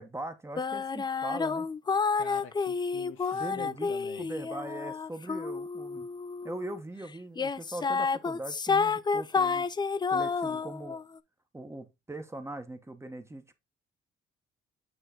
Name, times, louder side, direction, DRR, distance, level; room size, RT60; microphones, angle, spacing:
voice 1, 0.0-1.7 3.3-6.1 6.4-9.7 10.1-11.0 11.5-13.5, right 2 dB, 15° right, 1.0 m, -41 dB
sound 1, 0.6-6.8 7.3-11.0, left 5 dB, 20° left, 0.4 m, -30 dB
voice 2, 2.1-4.3 10.5-10.6, left 8 dB, 85° left, 1.1 m, -46 dB
8.0 x 3.1 x 3.8 m
cardioid pair, 90°, 20 cm